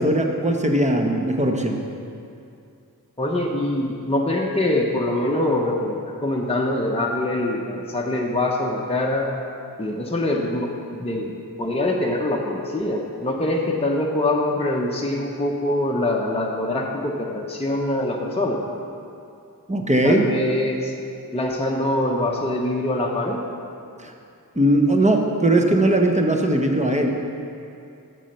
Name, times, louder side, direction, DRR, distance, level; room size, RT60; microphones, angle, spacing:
voice 1, 0.0-1.8 19.7-20.2 24.0-24.1 24.5-27.1, right 1 dB, 20° right, 3 dB, 1.0 m, -19 dB
voice 2, 3.2-9.3 9.8-18.6 20.0-20.9 21.3-23.4, left 1 dB, 15° left, -2 dB, 0.9 m, -24 dB
7.2 x 7.0 x 6.6 m, 2.5 s
wide cardioid pair, 50°, 36 cm